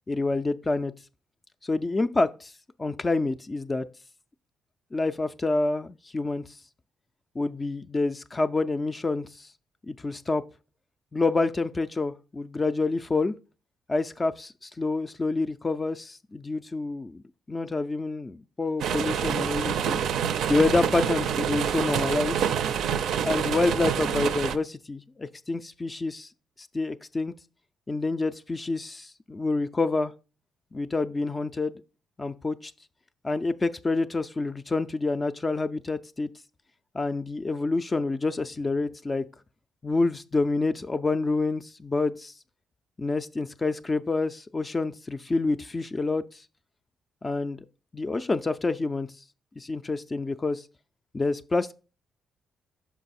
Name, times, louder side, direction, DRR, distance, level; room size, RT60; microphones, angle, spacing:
voice 1, 0.1-0.9 1.6-2.5 2.8-3.8 4.9-6.6 7.4-9.5 9.9-10.4 11.1-13.3 13.9-17.2 17.5-20.0 20.5-22.5 23.2-26.3 26.6-27.3 27.9-30.1 30.7-31.8 32.2-32.7 33.2-36.3 36.9-39.2 39.8-42.3 43.0-46.4 47.2-47.6 47.9-49.1 49.6-50.6 51.1-51.7, left 3 dB, 25° left, 0.3 m, -27 dB
sound 1, 18.8-24.6, right 8 dB, 75° right, 0.4 m, -27 dB
5.9 x 4.6 x 4.1 m
cardioid pair, 90°, 0 cm